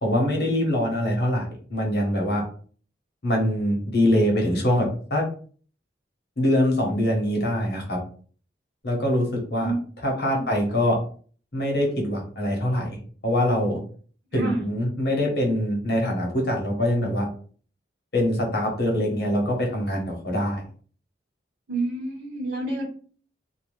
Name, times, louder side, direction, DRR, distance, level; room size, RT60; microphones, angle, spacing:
voice 1, 0.0-2.4 3.2-5.3 6.4-8.0 8.8-9.7 10.0-11.0 11.5-12.9 13.2-13.8 14.3-17.3 18.1-20.6, left 1 dB, 60° left, 0 dB, 1.1 m, -23 dB
voice 2, 14.3-14.6 21.7-22.8, right 2 dB, 85° right, -4 dB, 1.2 m, -28 dB
2.7 x 2.4 x 3.1 m, 0.44 s
head